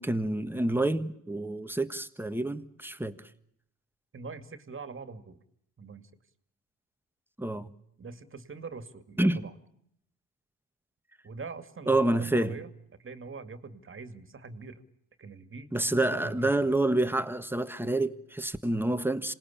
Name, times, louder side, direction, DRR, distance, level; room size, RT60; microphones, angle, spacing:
voice 1, 0.0-3.2 7.4-7.7 9.2-9.4 11.9-12.6 15.7-19.3, right 2 dB, 5° right, 1.5 m, -28 dB
voice 2, 4.1-5.4 5.8-6.1 8.0-9.5 11.2-12.0 12.3-12.7 13.0-14.8 15.2-15.7 16.1-16.7, right 4 dB, 35° right, 2.3 m, -43 dB
27.0 x 19.0 x 8.6 m
supercardioid pair, 70°, 35 cm